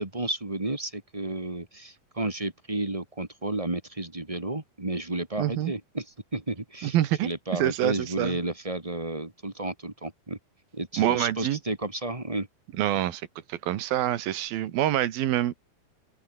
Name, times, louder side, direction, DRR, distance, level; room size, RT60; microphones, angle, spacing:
voice 1, 0.0-6.0 6.3-6.9 7.2-10.4 10.7-12.5, right 2 dB, 15° right, 1.2 m, -32 dB
voice 2, 5.4-5.7 6.8-8.4 11.0-11.6 12.8-13.2 13.5-15.5, right 12 dB, 75° right, 3.3 m, -26 dB
open air
omnidirectional pair, 4.3 m